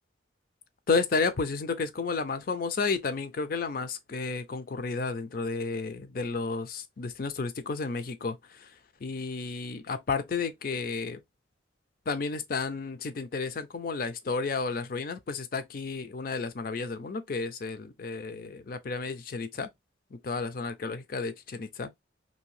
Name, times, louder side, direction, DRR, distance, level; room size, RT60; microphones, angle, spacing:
voice 1, 0.9-11.2 12.1-19.7 20.1-21.9, left 4 dB, 50° left, 0.4 m, -32 dB
2.7 x 2.7 x 3.0 m
head